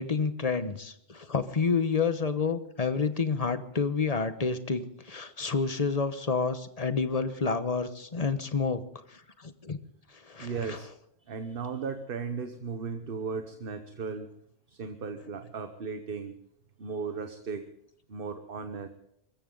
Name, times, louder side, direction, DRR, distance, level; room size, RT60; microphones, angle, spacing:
voice 1, 0.0-8.8 9.1-9.8 10.3-10.8, left 5 dB, 40° left, 11 dB, 1.1 m, -29 dB
voice 2, 10.4-10.9 11.2-14.3 14.7-16.3 16.8-17.7 18.1-18.9, right 5 dB, 60° right, 8 dB, 1.2 m, -36 dB
24.5 x 14.5 x 3.9 m, 0.75 s
omnidirectional pair, 1.1 m